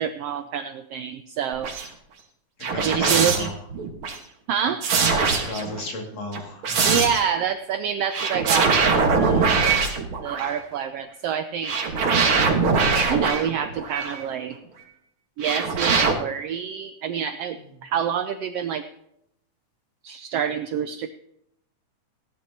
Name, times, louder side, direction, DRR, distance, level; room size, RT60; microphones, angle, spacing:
voice 1, 0.0-1.7 2.8-3.5 4.5-4.8 6.8-9.5 10.2-11.7 13.1-14.6 15.4-17.6 17.8-18.8 20.0-21.1, right 8 dB, 85° right, 9 dB, 1.4 m, -27 dB
sound 1, 1.5-1.9 2.6-4.2 4.8-5.8 6.3-7.3 8.1-10.6 11.6-14.2 15.4-16.1, right 4 dB, 50° right, 2.1 m, -22 dB
voice 2, 2.7-3.5 5.0-6.9, left 2 dB, 60° left, 1 dB, 3.4 m, -35 dB
17.0 x 11.5 x 2.9 m, 0.77 s
omnidirectional pair, 3.4 m